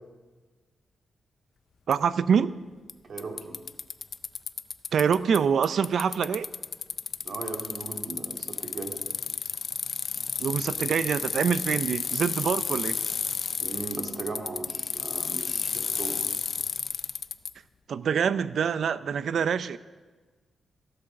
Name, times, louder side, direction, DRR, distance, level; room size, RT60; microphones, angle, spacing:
Bicycle, 1.9-2.0 2.9-3.0 3.2-5.4 5.6-17.5, left 6 dB, 55° left, 0.5 m, -32 dB
voice 1, 1.9-2.5 4.9-6.5 10.4-13.0 17.9-19.8, right 7 dB, 70° right, 15 dB, 0.5 m, -25 dB
voice 2, 3.0-3.6 7.2-8.9 13.6-16.2, right 3 dB, 55° right, 2 dB, 2.4 m, -37 dB
15.0 x 8.7 x 6.5 m, 1.3 s
cardioid pair, 95°, 0 cm